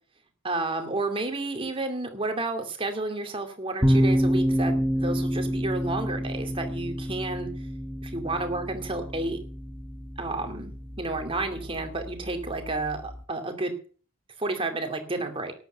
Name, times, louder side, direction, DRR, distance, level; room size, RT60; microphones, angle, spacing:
voice 1, 0.4-7.5 8.0-9.4 10.2-13.7 14.4-15.5, right 2 dB, 25° right, 6 dB, 2.6 m, -31 dB
sound 1, 3.8-13.2, equal, 10° right, 1.1 m, -28 dB
13.0 x 10.5 x 6.9 m, 0.42 s
head